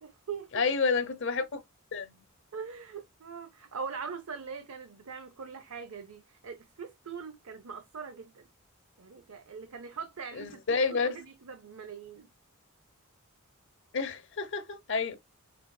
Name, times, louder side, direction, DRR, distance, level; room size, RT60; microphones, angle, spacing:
voice 1, 0.0-0.7 2.5-8.4 9.0-12.3, right 5 dB, 70° right, 0.6 m, -42 dB
voice 2, 0.5-1.6 1.9-2.2 10.4-11.2 13.9-15.2, left 4 dB, 55° left, 0.8 m, -29 dB
5.0 x 3.2 x 2.2 m
head